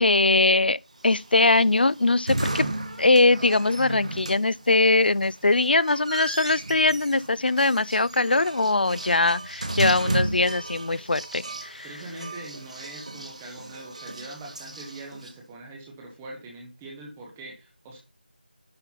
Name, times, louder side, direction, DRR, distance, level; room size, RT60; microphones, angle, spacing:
voice 1, 0.0-2.7 3.0-11.9, left 2 dB, 75° left, 0.4 m, -21 dB
sound 1, 1.0-15.3, right 2 dB, 45° right, 1.4 m, -34 dB
voice 2, 11.8-18.0, right 2 dB, 5° right, 0.5 m, -42 dB
10.5 x 4.1 x 5.5 m
figure-of-eight pair, 180°, 5 cm